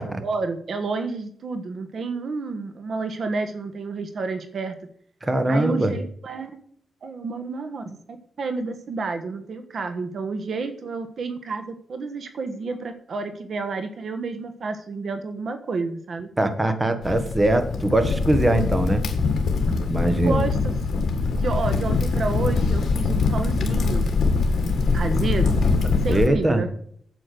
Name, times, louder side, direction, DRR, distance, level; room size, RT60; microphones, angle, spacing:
voice 1, 0.0-4.7 5.5-6.5 7.0-8.0 8.4-16.3 20.2-24.1 24.9-25.5 26.0-26.7, right 4 dB, 60° right, 7 dB, 1.4 m, -30 dB
voice 2, 5.2-5.9 16.4-19.0 19.8-20.4 26.1-26.6, right 1 dB, 20° right, 9 dB, 1.5 m, -21 dB
Crackle, 17.0-26.3, left 4 dB, 65° left, 1.9 m, -23 dB
9.2 x 8.6 x 6.8 m, 0.63 s
cardioid pair, 100°, 0 cm